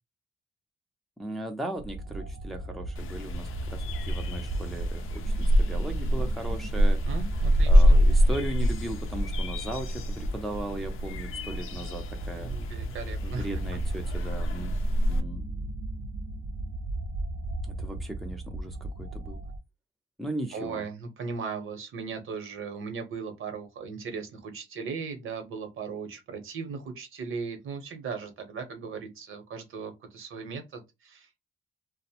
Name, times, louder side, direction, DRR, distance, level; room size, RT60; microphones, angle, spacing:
voice 1, 1.2-7.0 7.7-12.5 13.2-14.8 15.0-15.5 17.8-19.4 20.2-20.8, right 1 dB, ahead, 0.4 m, -37 dB
sound 1, 1.8-19.6, right 2 dB, 55° right, 0.4 m, -36 dB
sound 2, 3.0-15.2, equal, 75° left, 0.4 m, -26 dB
voice 2, 7.1-8.0 12.4-13.5 14.2-14.3 20.5-31.4, right 5 dB, 70° right, 0.8 m, -37 dB
2.5 x 2.0 x 2.8 m
wide cardioid pair, 140°, 21 cm